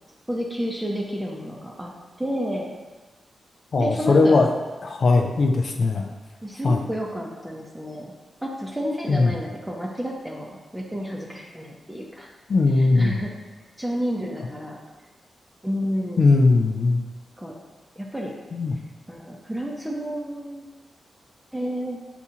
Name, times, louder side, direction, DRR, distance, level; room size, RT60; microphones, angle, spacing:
voice 1, 0.3-1.9 2.2-2.7 3.8-4.4 6.4-8.1 8.4-12.3 12.7-13.3 13.8-14.8 15.6-16.2 17.4-17.6 18.0-18.3 19.1-20.7 21.5-22.0, equal, 10° right, -2 dB, 0.7 m, -30 dB
voice 2, 3.7-4.5 4.8-6.1 6.6-6.8 9.1-9.3 12.5-13.2 16.2-17.0 18.6-18.7, left 3 dB, 60° left, 2 dB, 0.4 m, -19 dB
6.8 x 2.4 x 2.8 m, 1.2 s
cardioid pair, 65°, 0 cm